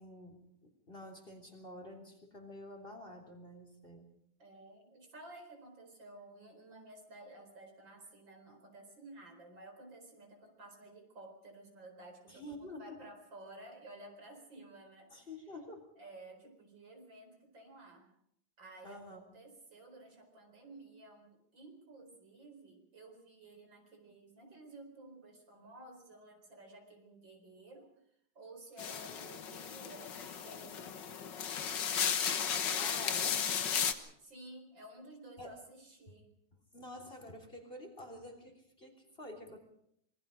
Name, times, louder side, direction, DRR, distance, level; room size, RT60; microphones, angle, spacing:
voice 1, 0.0-4.1 12.3-13.0 15.1-15.9 18.8-19.2 32.7-33.4 35.4-35.6 36.7-39.6, left 1 dB, 25° left, 4 dB, 3.6 m, -49 dB
voice 2, 4.4-15.3 16.0-18.1 18.6-27.9 28.4-31.5 31.8-32.3 34.2-36.3, right 2 dB, 65° right, 4 dB, 5.2 m, -54 dB
sound 1, 28.8-33.9, left 7 dB, 65° left, 1.9 m, -35 dB
26.0 x 22.5 x 5.1 m, 0.71 s
omnidirectional pair, 2.2 m